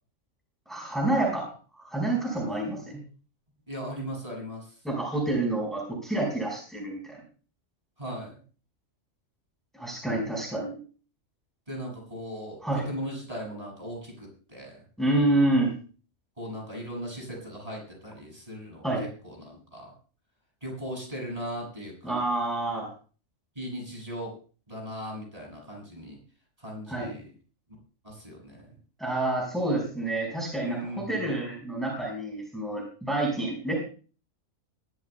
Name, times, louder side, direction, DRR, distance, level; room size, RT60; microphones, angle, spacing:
voice 1, 0.7-3.0 4.8-7.2 9.7-10.7 12.6-12.8 15.0-15.7 18.8-19.0 22.0-22.9 26.9-27.1 29.0-33.7, right 2 dB, ahead, -1 dB, 4.9 m, -28 dB
voice 2, 3.7-4.8 8.0-8.4 11.7-14.8 16.4-18.9 19.2-19.9 20.6-22.2 23.5-24.3 24.7-26.2 26.6-27.3 28.0-28.7 30.6-31.3, equal, 25° right, -1 dB, 7.0 m, -38 dB
21.5 x 13.5 x 2.3 m, 0.39 s
omnidirectional pair, 1.4 m